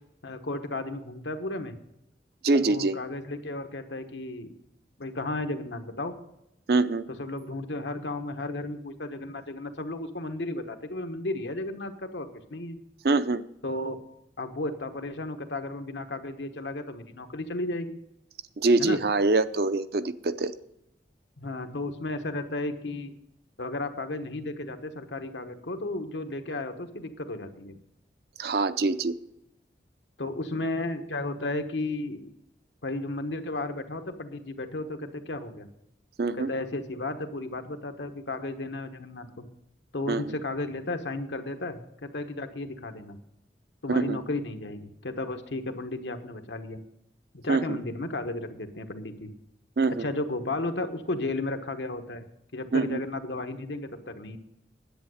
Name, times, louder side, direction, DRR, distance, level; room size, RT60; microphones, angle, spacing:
voice 1, 0.2-1.8 2.6-4.5 5.0-6.2 7.2-12.8 13.6-14.0 14.4-18.0 18.8-19.0 21.4-23.1 23.6-27.8 30.2-32.3 32.8-35.7 36.3-39.5 39.9-43.2 43.8-46.8 47.3-49.3 50.0-52.2 52.5-54.4, left 2 dB, 85° left, 6 dB, 1.2 m, -34 dB
voice 2, 2.4-3.0 6.7-7.1 13.0-13.4 18.6-20.5 28.4-29.2 36.2-36.5 40.1-40.4 43.9-44.2 47.5-47.8 49.8-50.1 52.7-53.0, right 3 dB, 60° right, 12 dB, 0.5 m, -24 dB
10.5 x 8.4 x 6.4 m, 0.85 s
head